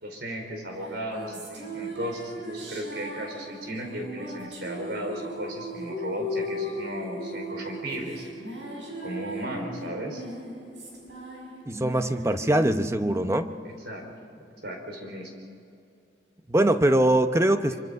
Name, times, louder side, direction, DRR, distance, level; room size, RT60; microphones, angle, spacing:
voice 1, 0.0-8.3 9.0-10.2 13.8-14.0 14.6-15.3, equal, 65° right, 2 dB, 4.8 m, -35 dB
sound 1, 0.8-14.5, equal, 85° right, 5.9 m, -37 dB
voice 2, 11.7-13.5 16.5-17.8, right 1 dB, 15° right, 9 dB, 0.8 m, -22 dB
25.5 x 24.5 x 5.4 m, 2.5 s
head